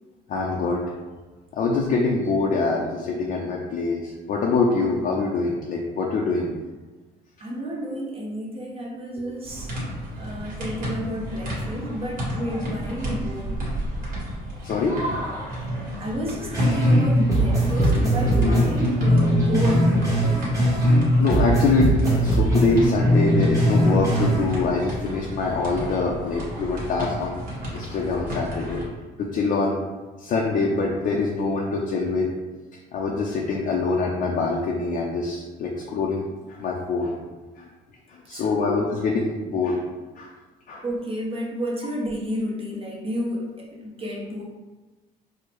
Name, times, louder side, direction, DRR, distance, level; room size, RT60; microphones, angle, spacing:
voice 1, 0.3-0.8 1.5-6.5 9.2-9.3 14.6-15.0 17.8-18.6 21.2-27.4 27.7-28.8 29.2-29.8 30.2-32.3 32.9-36.2 36.5-37.1 37.6-37.7 38.1-39.8 40.2-40.3 40.7-40.8, left 3 dB, 55° left, -2 dB, 0.5 m, -24 dB
voice 2, 7.4-9.7 10.2-13.6 14.2-14.3 16.0-19.9 38.3-38.7 40.8-44.4, equal, 35° right, -3 dB, 0.8 m, -30 dB
sound 1, 9.4-28.8, equal, 55° right, 1.5 m, -33 dB
sound 2, 16.5-17.0 17.3-21.0 21.3-24.5, right 1 dB, 20° right, 1.2 m, -20 dB
4.6 x 2.1 x 3.0 m, 1.2 s
cardioid pair, 110°, 17 cm